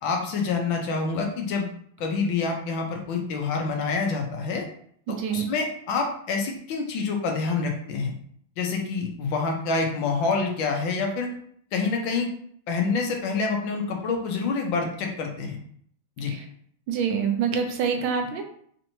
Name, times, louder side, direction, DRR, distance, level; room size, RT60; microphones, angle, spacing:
voice 1, 0.0-1.7 2.0-4.6 5.1-8.1 8.6-11.3 11.7-12.3 12.7-15.6 16.2-16.3, left 4 dB, 75° left, 2 dB, 1.4 m, -27 dB
voice 2, 5.1-5.5 16.3-16.4 16.9-18.4, right 6 dB, 80° right, 4 dB, 1.4 m, -26 dB
4.3 x 2.8 x 2.7 m, 0.63 s
omnidirectional pair, 2.2 m